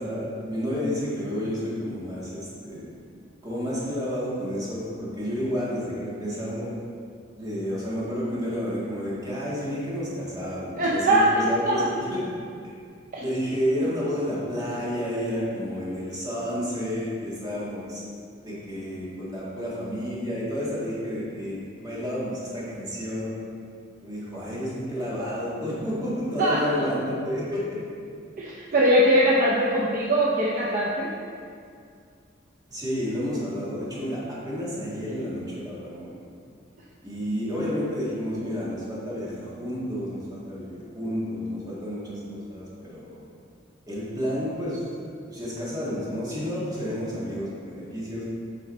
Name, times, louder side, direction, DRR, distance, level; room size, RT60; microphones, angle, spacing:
voice 1, 0.0-2.9 3.4-6.7 7.4-12.3 13.2-18.0 18.4-23.3 24.0-27.8 32.7-36.1 37.0-43.2 43.9-44.8 45.3-48.3, equal, 20° right, -8 dB, 1.7 m, -30 dB
voice 2, 10.7-11.9 13.1-13.2 13.8-13.9 26.4-26.8 28.4-31.1, equal, 45° right, -5 dB, 0.7 m, -22 dB
7.7 x 3.9 x 4.2 m, 2.3 s
head